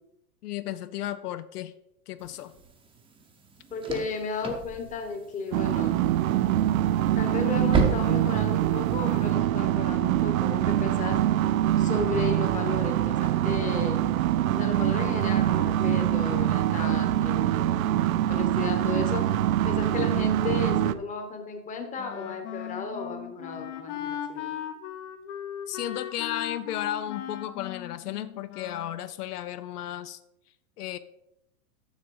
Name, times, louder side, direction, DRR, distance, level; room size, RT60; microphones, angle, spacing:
voice 1, 0.4-1.7 2.1-2.5 25.7-30.2 30.8-31.0, left 12 dB, 75° left, 13 dB, 0.7 m, -34 dB
sound 1, 2.2-9.3, right 4 dB, 10° right, 0.8 m, -34 dB
voice 2, 3.7-6.0 7.1-11.2 11.8-14.1 14.5-17.9 18.3-19.2 19.6-24.6, left 4 dB, 15° left, 5 dB, 1.1 m, -34 dB
sound 2, 5.5-20.9, right 12 dB, 60° right, 0.6 m, -24 dB
Wind instrument woodwind instrument, 22.0-29.1, left 10 dB, 50° left, 1.0 m, -38 dB
7.3 x 6.2 x 5.4 m, 0.82 s
hypercardioid pair, 135°, 46 cm